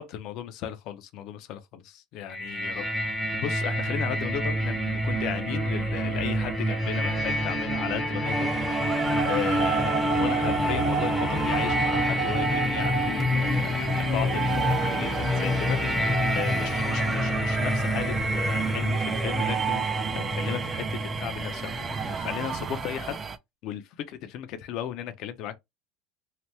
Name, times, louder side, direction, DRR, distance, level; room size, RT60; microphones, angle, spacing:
voice 1, 0.0-23.2 23.6-25.6, left 10 dB, 55° left, 0.6 m, -36 dB
sound 1, 2.3-22.1, left 1 dB, 5° left, 0.7 m, -28 dB
sound 2, 8.2-23.4, right 5 dB, 25° right, 0.4 m, -31 dB
sound 3, 9.2-13.1, right 9 dB, 85° right, 0.7 m, -31 dB
2.8 x 2.2 x 3.3 m
supercardioid pair, 135°, 0 cm